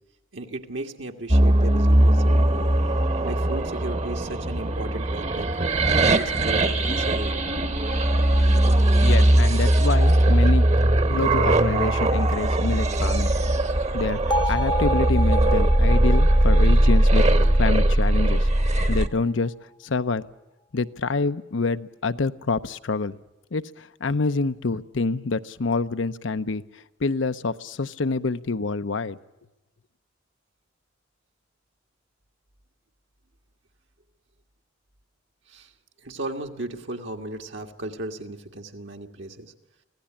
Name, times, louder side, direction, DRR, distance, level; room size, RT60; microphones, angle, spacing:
voice 1, 0.3-2.7 3.2-5.5 5.9-7.5 14.4-14.5 35.5-35.7 36.0-39.5, right 2 dB, 70° right, 2 dB, 1.7 m, -35 dB
sound 1, 1.3-19.1, right 1 dB, 35° right, 1.1 m, -20 dB
voice 2, 9.0-10.6 11.1-13.3 13.9-17.3 17.6-18.5 18.9-19.5 19.8-20.2 20.7-23.2 23.5-29.2, left 3 dB, 70° left, 12 dB, 0.7 m, -27 dB
Bell, 14.3-18.4, left 1 dB, 25° left, 0.8 m, -31 dB
25.0 x 17.0 x 8.6 m, 1.1 s
head